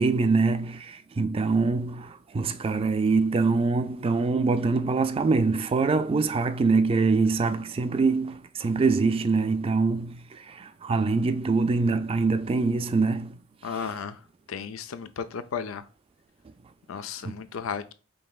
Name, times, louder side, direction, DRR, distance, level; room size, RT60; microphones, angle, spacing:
voice 1, 0.0-13.4 13.6-14.0 17.2-17.3, right 4 dB, 25° right, 0.3 m, -24 dB
voice 2, 13.6-14.2 14.5-15.8 16.9-17.9, left 6 dB, 85° left, 0.5 m, -34 dB
5.3 x 3.2 x 2.3 m
head